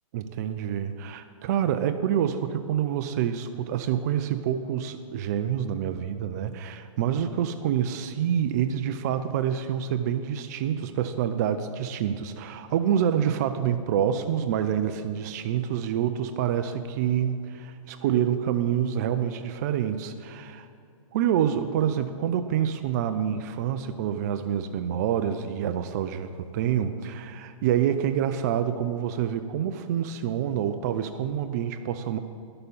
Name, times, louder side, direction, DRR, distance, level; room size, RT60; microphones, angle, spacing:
voice 1, 0.1-20.7 21.1-32.2, right 9 dB, 30° right, 9 dB, 0.3 m, -27 dB
11.0 x 6.8 x 5.4 m, 2.5 s
hypercardioid pair, 145°, 18 cm